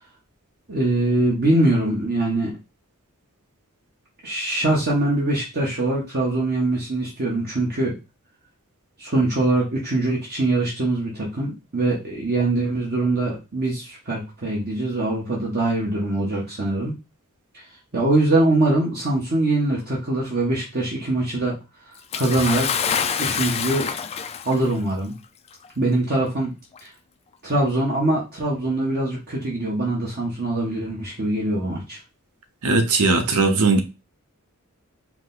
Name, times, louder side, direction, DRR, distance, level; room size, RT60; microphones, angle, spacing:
voice 1, 0.7-2.6 4.2-7.9 9.0-16.9 17.5-17.6 17.9-21.5 22.1-23.9 24.4-25.1 25.8-26.5 26.8-26.9 27.4-32.0, right 2 dB, 45° right, 1.2 m, -23 dB
Bathtub (filling or washing) / Splash splatter, 22.1-24.7 25.6-25.7 26.7-26.8, left 7 dB, 30° left, 0.3 m, -26 dB
voice 2, 32.6-33.8, right 3 dB, 85° right, 0.8 m, -18 dB
4.8 x 2.1 x 3.9 m
head